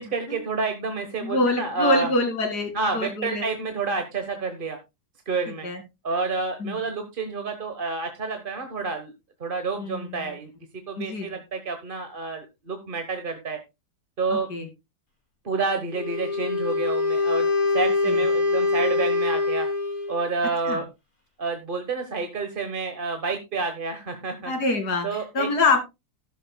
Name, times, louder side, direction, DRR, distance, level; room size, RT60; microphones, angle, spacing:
voice 1, 0.0-2.1 2.7-4.8 5.3-5.7 6.0-9.1 9.4-10.5 10.9-13.6 14.2-14.5 15.4-17.5 17.7-19.7 20.1-20.8 21.4-24.5 25.0-25.5, right 4 dB, 35° right, 6 dB, 1.2 m, -29 dB
voice 2, 1.2-3.4 5.6-5.8 6.6-6.8 9.8-10.3 11.0-11.3 14.3-14.7 18.1-18.2 20.6-20.8 24.5-25.8, left 2 dB, 75° left, 6 dB, 2.9 m, -25 dB
Wind instrument woodwind instrument, 15.9-20.3, left 3 dB, 30° left, 5.3 m, -24 dB
13.0 x 11.5 x 2.2 m, 0.24 s
omnidirectional pair, 1.7 m